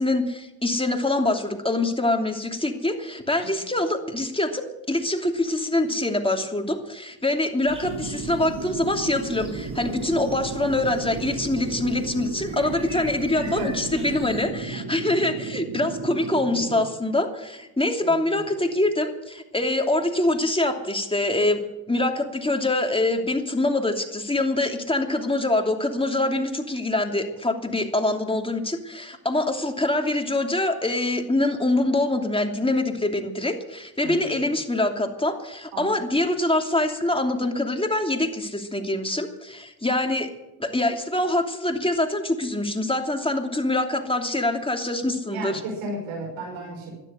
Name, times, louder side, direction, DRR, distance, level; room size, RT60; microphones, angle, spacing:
voice 1, 0.0-21.6 21.9-40.3 40.6-45.6, left 2 dB, 10° left, 4 dB, 2.8 m, -24 dB
sound 1, 7.7-14.5, right 1 dB, 10° right, 7.5 m, -42 dB
sound 2, 7.8-16.9, right 4 dB, 50° right, 2.5 m, -34 dB
voice 2, 13.4-13.8 18.0-18.4 34.0-34.4 35.7-36.0 45.3-46.9, right 1 dB, 80° right, 0 dB, 6.1 m, -34 dB
12.5 x 11.0 x 8.8 m, 0.96 s
supercardioid pair, 50°, 46 cm